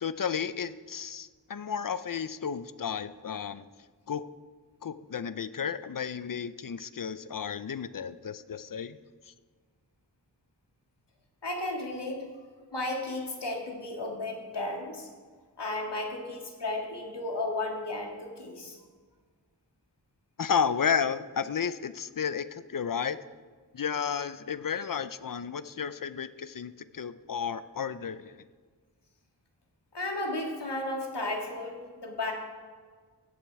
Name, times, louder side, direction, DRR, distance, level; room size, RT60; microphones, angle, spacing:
voice 1, 0.0-3.6 4.1-4.3 4.8-9.0 20.4-23.2 23.7-28.4, left 7 dB, 55° left, 14 dB, 0.5 m, -32 dB
voice 2, 11.4-12.2 12.7-15.1 15.6-18.8 29.9-32.3, left 2 dB, 90° left, 1 dB, 1.9 m, -34 dB
16.5 x 7.3 x 4.7 m, 1.5 s
wide cardioid pair, 50°, 40 cm